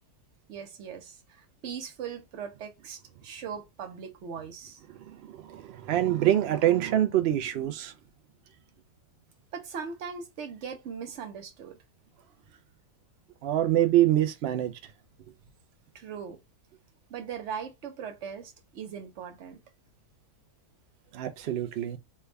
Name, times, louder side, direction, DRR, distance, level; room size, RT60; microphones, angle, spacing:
voice 1, 0.5-4.8 9.5-11.8 15.9-16.4 17.1-19.6, right 7 dB, 55° right, 0.9 m, -39 dB
voice 2, 5.0-7.9 13.4-14.7 21.1-22.0, right 12 dB, 85° right, 0.5 m, -25 dB
3.4 x 2.3 x 3.1 m
omnidirectional pair, 1.7 m